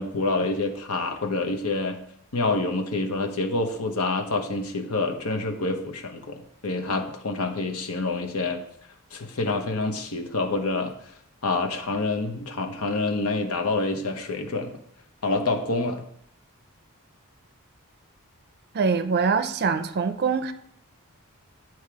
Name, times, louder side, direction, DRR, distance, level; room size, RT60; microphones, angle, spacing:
voice 1, 0.0-2.0 2.3-8.6 9.1-10.9 11.4-14.7 15.2-16.0, left 3 dB, 80° left, 4 dB, 1.0 m, -27 dB
voice 2, 18.7-20.5, right 5 dB, 45° right, 10 dB, 0.5 m, -24 dB
8.5 x 4.6 x 4.8 m, 0.69 s
head